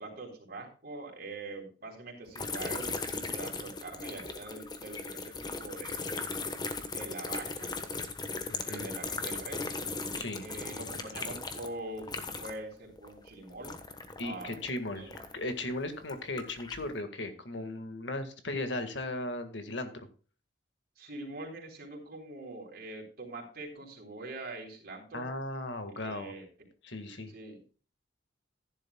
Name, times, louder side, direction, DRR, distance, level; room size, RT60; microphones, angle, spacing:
voice 1, 0.0-6.3 6.9-7.7 8.6-9.8 10.4-13.8 14.2-14.6 15.0-15.1 21.0-25.3 25.9-26.5 27.3-27.6, right 2 dB, 55° right, 1 dB, 3.8 m, -43 dB
sound 1, 2.3-12.7 13.0-15.5 16.0-16.8, left 3 dB, 20° left, 1.2 m, -38 dB
voice 2, 8.5-8.9 10.2-10.5 14.2-20.1 25.1-26.3 26.8-27.3, left 2 dB, 70° left, 8 dB, 1.8 m, -37 dB
15.0 x 11.0 x 2.3 m, 0.37 s
head